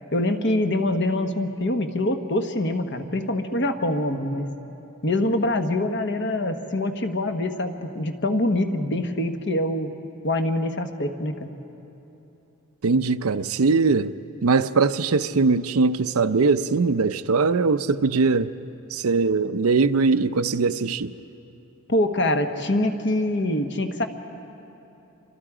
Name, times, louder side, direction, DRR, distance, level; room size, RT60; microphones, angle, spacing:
voice 1, 0.1-4.5 5.0-9.9 10.2-11.5 21.9-24.1, left 1 dB, 55° left, 1.3 m, -24 dB
voice 2, 12.8-14.1 14.4-18.5 18.9-21.1, right 4 dB, 85° right, 0.6 m, -21 dB
28.0 x 25.0 x 5.0 m
head